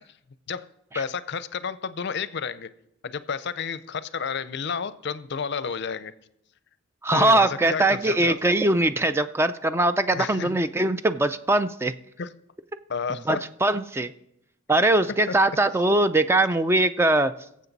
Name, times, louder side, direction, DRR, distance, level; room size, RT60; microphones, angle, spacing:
voice 1, 0.9-2.7 3.0-6.1 7.1-8.4 10.1-10.6 12.2-12.3 12.9-13.4 15.3-15.4, left 6 dB, 60° left, 15 dB, 0.5 m, -31 dB
voice 2, 7.0-11.9 13.3-14.1 14.7-17.3, right 2 dB, 10° right, 11 dB, 0.4 m, -21 dB
22.0 x 7.5 x 4.0 m, 0.79 s
head